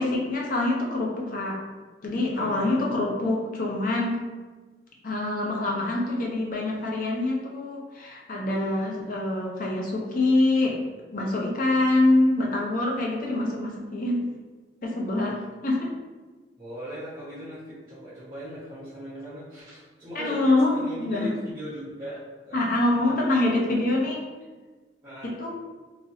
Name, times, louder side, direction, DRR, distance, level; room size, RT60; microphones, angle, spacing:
voice 1, 0.0-1.6 2.0-4.2 5.0-10.7 11.1-14.2 14.8-15.3 15.6-15.9 20.1-21.3 22.5-24.2 25.2-25.5, left 2 dB, 50° left, -2 dB, 0.7 m, -25 dB
voice 2, 2.3-2.8 15.3-15.4 16.6-23.9 25.0-25.3, equal, 25° right, -12 dB, 1.2 m, -39 dB
3.1 x 2.9 x 2.7 m, 1.3 s
head